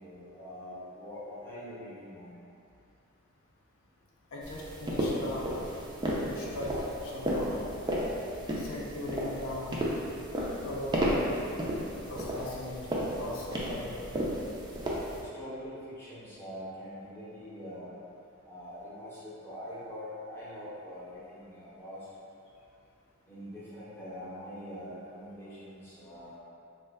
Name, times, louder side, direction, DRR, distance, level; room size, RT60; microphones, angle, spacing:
voice 1, 0.0-2.3 15.3-17.9 18.5-22.0 23.3-26.4, equal, 10° left, -10 dB, 0.7 m, -43 dB
voice 2, 4.3-5.6 6.2-7.6 8.6-9.8 10.6-11.3 12.0-14.1, left 1 dB, 65° left, -4 dB, 0.4 m, -39 dB
sound 1, 4.4-15.2, equal, 20° right, 0.3 m, -33 dB
3.1 x 2.1 x 3.3 m, 2.5 s
head